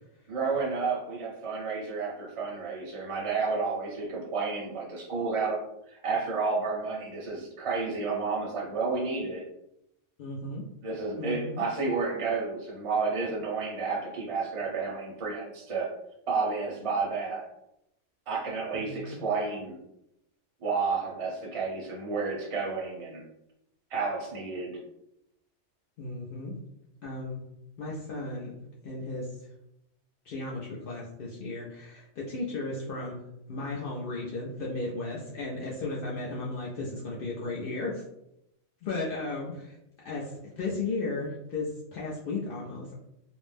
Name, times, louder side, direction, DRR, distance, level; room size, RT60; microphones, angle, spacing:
voice 1, 0.3-5.6 5.9-9.4 10.8-15.9 16.3-17.5 18.3-19.8 20.6-23.2 23.9-24.8, right 4 dB, 35° right, -3 dB, 0.6 m, -31 dB
voice 2, 10.2-10.6 11.2-11.6 18.8-19.2 26.0-26.5 27.0-27.4 27.8-28.6 28.8-29.3 30.3-33.2 33.5-38.0 38.8-39.8 40.0-42.9, left 2 dB, 60° left, -4 dB, 0.6 m, -35 dB
2.5 x 2.0 x 3.2 m, 0.83 s
omnidirectional pair, 1.2 m